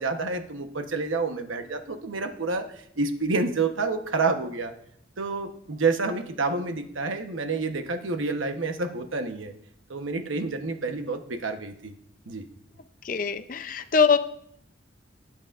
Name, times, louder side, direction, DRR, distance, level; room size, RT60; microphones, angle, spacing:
voice 1, 0.0-2.7 3.0-4.7 5.2-9.5 9.9-11.9 12.3-12.4, right 3 dB, 90° right, 6 dB, 1.0 m, -28 dB
voice 2, 13.0-14.2, left 5 dB, 45° left, 9 dB, 0.5 m, -22 dB
18.0 x 8.3 x 2.5 m, 0.70 s
head